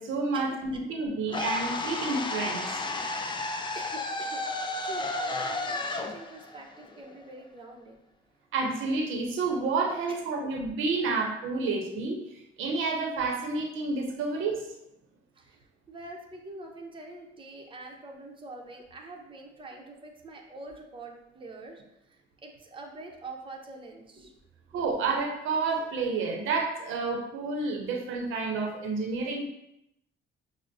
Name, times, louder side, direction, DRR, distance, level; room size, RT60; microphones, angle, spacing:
voice 1, 0.0-2.6 8.5-14.6 24.7-29.5, right 3 dB, 85° right, 2 dB, 0.7 m, -30 dB
sound 1, 1.3-7.4, left 2 dB, 25° left, 0.4 m, -33 dB
voice 2, 3.7-4.4 4.8-8.0 10.1-10.5 11.1-11.2 15.4-21.8 22.1-24.3, right 2 dB, 25° right, 0 dB, 0.7 m, -45 dB
6.0 x 2.0 x 2.6 m, 0.83 s
cardioid pair, 90°, 20 cm